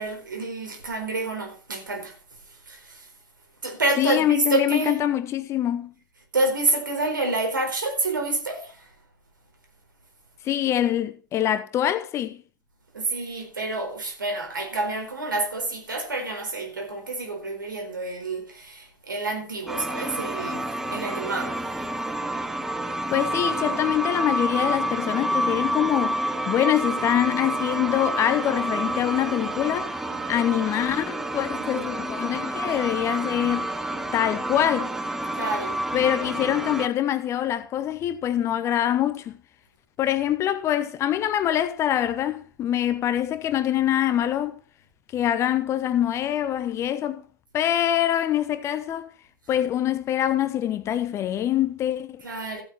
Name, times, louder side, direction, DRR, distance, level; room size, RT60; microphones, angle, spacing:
voice 1, 0.0-2.1 2.7-3.1 3.6-5.0 6.3-8.9 12.9-21.6 31.6-31.9 35.3-35.8 52.2-52.6, right 2 dB, 75° right, 4.5 m, -28 dB
voice 2, 4.0-5.9 10.4-12.4 23.1-30.0 30.3-33.7 34.1-34.9 35.9-39.3 40.0-44.6 45.1-47.2 47.5-49.1 49.5-52.2, left 11 dB, 25° left, 1.0 m, -24 dB
sound 1, 19.7-36.9, right 1 dB, 5° right, 1.0 m, -29 dB
15.0 x 8.5 x 4.5 m
figure-of-eight pair, 100°, 11 cm